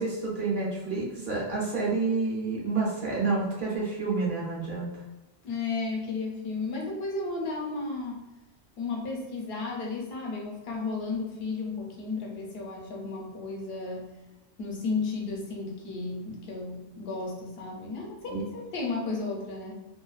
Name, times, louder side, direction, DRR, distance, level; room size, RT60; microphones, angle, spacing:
voice 1, 0.0-4.9 18.3-18.4, right 3 dB, 55° right, -5 dB, 0.9 m, -29 dB
voice 2, 5.4-8.2 8.8-14.1 14.6-19.8, left 3 dB, 70° left, -1 dB, 0.8 m, -33 dB
2.4 x 2.2 x 2.3 m, 1.0 s
omnidirectional pair, 1.1 m